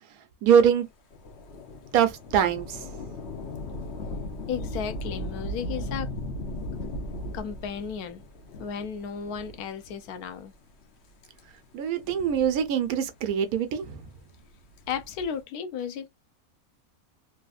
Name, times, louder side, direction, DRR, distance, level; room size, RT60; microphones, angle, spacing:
voice 1, 0.4-0.9 1.9-2.8 11.7-14.1, right 8 dB, 75° right, 1.1 m, -23 dB
Thunder / Rain, 1.1-10.1 10.8-10.9 11.8-13.1 14.6-15.4, left 1 dB, 55° left, 1.0 m, -37 dB
voice 2, 4.5-6.1 7.3-8.2 8.6-10.5 14.9-16.1, left 7 dB, 80° left, 1.1 m, -34 dB
3.3 x 2.8 x 2.4 m
omnidirectional pair, 1.6 m